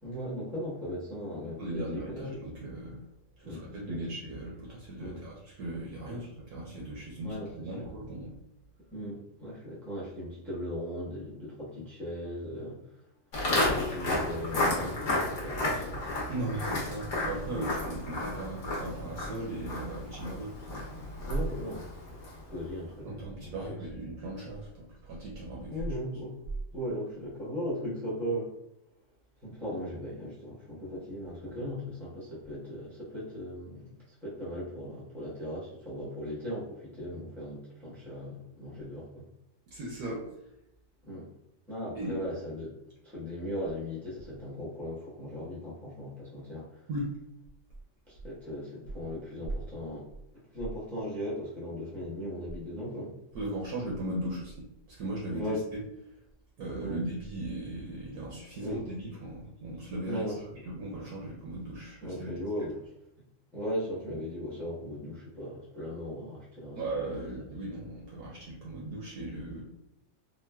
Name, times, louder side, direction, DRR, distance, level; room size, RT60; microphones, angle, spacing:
voice 1, 0.0-2.2 3.4-4.0 5.0-5.2 6.1-6.3 7.2-7.7 8.9-13.0 13.6-16.5 21.3-22.0 22.5-23.5 25.7-26.3 26.7-28.5 29.4-39.2 41.0-41.3 41.7-42.7 43.0-46.9 48.1-50.1 50.5-53.2 55.3-55.6 56.8-57.1 58.6-58.8 60.0-60.3 62.0-62.8 63.5-66.8, equal, ahead, -7 dB, 0.4 m, -38 dB
voice 2, 1.6-3.0 3.4-8.3 16.3-21.1 23.0-25.8 31.4-31.5 39.7-40.3 41.9-42.2 46.9-47.1 53.3-55.5 56.6-60.3 60.7-62.3 66.8-69.6, right 1 dB, 65° right, -4 dB, 1.1 m, -38 dB
Walk footsteps, 13.3-22.5, left 2 dB, 50° left, 1.0 m, -32 dB
3.7 x 2.1 x 2.2 m, 0.82 s
omnidirectional pair, 1.9 m